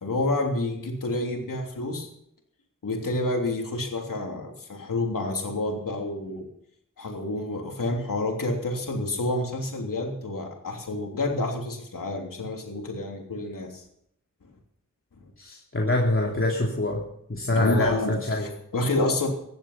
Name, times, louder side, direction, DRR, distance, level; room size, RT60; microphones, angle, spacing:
voice 1, 0.0-2.1 2.8-6.4 7.0-13.8 17.5-18.1 18.4-19.3, left 2 dB, 90° left, 1 dB, 3.2 m, -29 dB
voice 2, 15.4-17.0 17.3-18.5, left 2 dB, 40° left, -2 dB, 2.9 m, -25 dB
16.0 x 12.0 x 5.8 m, 0.73 s
cardioid pair, 40°, 32 cm